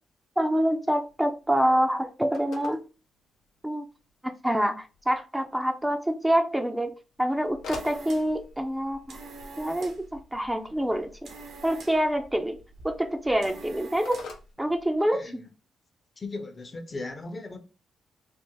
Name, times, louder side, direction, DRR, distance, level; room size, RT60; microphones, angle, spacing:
voice 1, 0.4-2.9 3.6-3.8 4.4-9.2 9.6-11.1 11.6-12.6 12.8-14.3 14.6-15.5, equal, 10° right, 0.5 m, -26 dB
Telephone, 1.0-15.5, left 4 dB, 75° left, 0.6 m, -49 dB
sound 1, 7.3-14.5, right 3 dB, 70° right, 0.8 m, -47 dB
voice 2, 15.1-15.5 16.2-17.6, left 3 dB, 40° left, 0.7 m, -37 dB
3.3 x 2.1 x 3.0 m
supercardioid pair, 55°, 0 cm